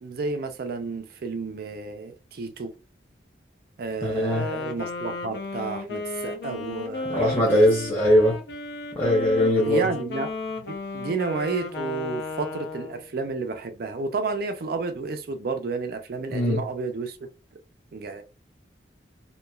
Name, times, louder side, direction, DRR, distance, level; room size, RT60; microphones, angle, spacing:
voice 1, 0.0-2.7 3.8-7.7 9.6-10.3 10.7-17.2 17.9-18.2, right 4 dB, 55° right, 0.4 m, -31 dB
voice 2, 4.0-4.4 7.1-8.3 8.9-9.8 16.3-16.6, left 1 dB, 10° left, 0.8 m, -20 dB
Wind instrument woodwind instrument, 4.1-13.1, left 3 dB, 60° left, 0.5 m, -34 dB
2.9 x 2.2 x 2.2 m
head